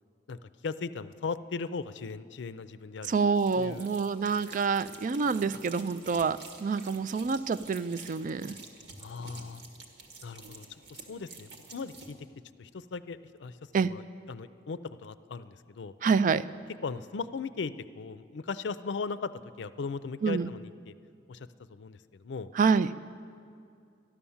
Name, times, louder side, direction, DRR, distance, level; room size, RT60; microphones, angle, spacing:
voice 1, 0.3-3.2 3.5-3.9 9.0-9.6 10.2-12.2 12.6-13.6 13.8-15.9 16.8-19.3 19.6-20.9 21.3-22.5, left 4 dB, 75° left, 14 dB, 0.5 m, -38 dB
voice 2, 3.1-8.6 13.7-13.9 16.0-16.5 20.2-20.5 22.5-22.9, right 5 dB, 45° right, 14 dB, 0.3 m, -27 dB
sound 1, 3.3-12.1, right 3 dB, 85° right, 1.7 m, -49 dB
13.5 x 11.0 x 7.1 m, 2.4 s
head